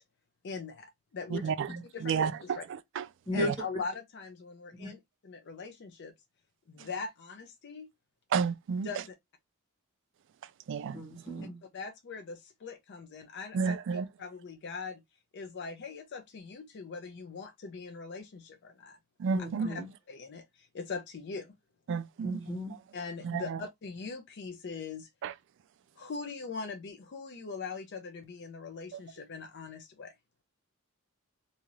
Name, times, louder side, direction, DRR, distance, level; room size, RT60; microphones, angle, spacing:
voice 1, 0.4-0.9 1.1-1.5 1.9-2.6 3.3-6.1 6.7-7.9 8.8-9.0 11.7-15.0 15.3-19.0 19.6-19.8 20.1-20.4 20.7-21.5 22.9-25.1 26.0-30.1, left 4 dB, 55° left, 0.5 m, -41 dB
voice 2, 1.3-1.7 2.0-3.1 3.3-3.5 8.3-8.9 10.7-11.0 13.5-14.1 19.2-19.7 21.9-22.4 23.2-23.6 25.2-25.3 28.9-29.0, right 6 dB, 60° right, 0.3 m, -31 dB
voice 3, 10.9-11.6 19.3-19.9 22.2-22.7, left 1 dB, 20° left, 1.4 m, -35 dB
2.7 x 2.4 x 3.0 m
head